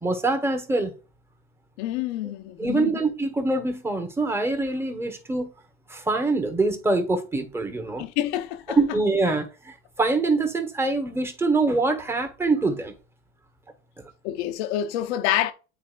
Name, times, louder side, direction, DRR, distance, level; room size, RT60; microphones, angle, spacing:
voice 1, 0.0-0.9 2.6-5.5 5.9-8.0 8.8-12.9, right 3 dB, 5° right, 1.2 m, -24 dB
voice 2, 1.8-2.9 8.0-8.8 14.2-15.5, left 12 dB, 90° left, 0.8 m, -27 dB
9.5 x 4.1 x 2.5 m
supercardioid pair, 120°, 33 cm